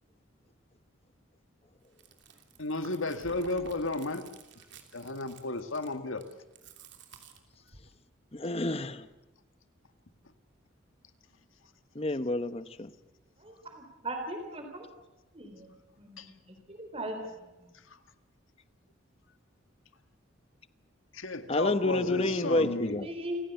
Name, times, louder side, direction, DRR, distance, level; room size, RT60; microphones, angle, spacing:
Chewing mastication, 1.8-7.9, right 4 dB, 60° right, 3.1 m, -53 dB
voice 1, 2.6-4.2 4.9-6.2 16.2-16.3 21.1-23.0, left 2 dB, 90° left, 1.9 m, -33 dB
voice 2, 8.3-9.1 11.9-12.9 21.5-23.1, left 2 dB, 30° left, 1.0 m, -29 dB
voice 3, 13.4-14.9 15.3-17.7 21.8-23.4, right 1 dB, 30° right, 3.7 m, -40 dB
29.0 x 16.0 x 8.2 m
head